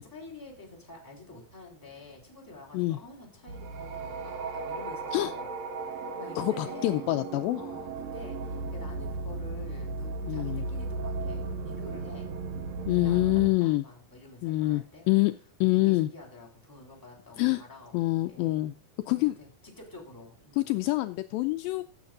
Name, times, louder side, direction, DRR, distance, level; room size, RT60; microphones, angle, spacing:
voice 1, 0.0-5.5 6.2-7.1 7.5-12.3 13.0-13.3 13.6-15.1 15.8-18.6 19.2-20.8, left 2 dB, 5° left, -2 dB, 3.4 m, -48 dB
sound 1, 3.5-13.5, right 3 dB, 65° right, 2.0 m, -36 dB
voice 2, 6.4-7.6 10.2-10.6 12.9-13.8 14.4-15.3 15.6-16.1 17.4-17.6 17.9-18.7 19.1-19.3 20.6-21.8, left 18 dB, 80° left, 9 dB, 2.2 m, -26 dB
16.5 x 7.1 x 2.5 m, 0.39 s
omnidirectional pair, 4.3 m